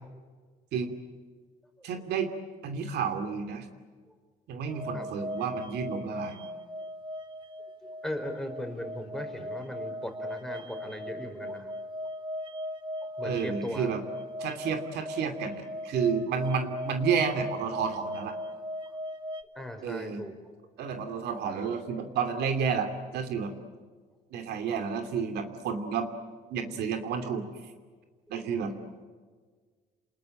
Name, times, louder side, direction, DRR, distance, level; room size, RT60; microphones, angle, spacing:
voice 1, 1.8-2.3 2.6-3.7 4.5-6.4 13.2-14.0 14.4-18.4 19.8-20.2 20.8-23.5 24.3-26.1 26.5-27.5 28.3-28.7, right 6 dB, 75° right, 6 dB, 2.7 m, -31 dB
voice 2, 4.7-5.1 7.8-11.7 13.2-13.9 19.5-20.3 28.3-28.5, left 1 dB, ahead, 4 dB, 4.9 m, -38 dB
sound 1, 4.7-19.4, equal, 30° right, 2.0 m, -38 dB
28.5 x 20.5 x 8.9 m, 1.5 s
cardioid pair, 110°, 17 cm